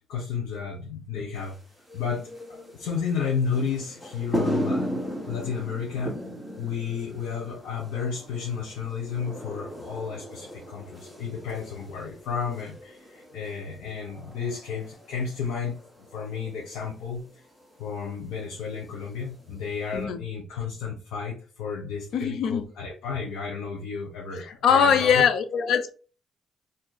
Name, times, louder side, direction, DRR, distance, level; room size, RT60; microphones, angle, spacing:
voice 1, 0.1-1.6 1.9-6.1 6.6-15.8 16.1-17.2 17.8-25.2, left 6 dB, 90° left, 0.9 m, -32 dB
sound 1, 1.3-20.0, equal, ahead, 1.3 m, -37 dB
voice 2, 22.1-22.6 24.6-25.9, left 7 dB, 75° left, 0.6 m, -21 dB
2.7 x 2.7 x 4.0 m
cardioid pair, 90°, 0 cm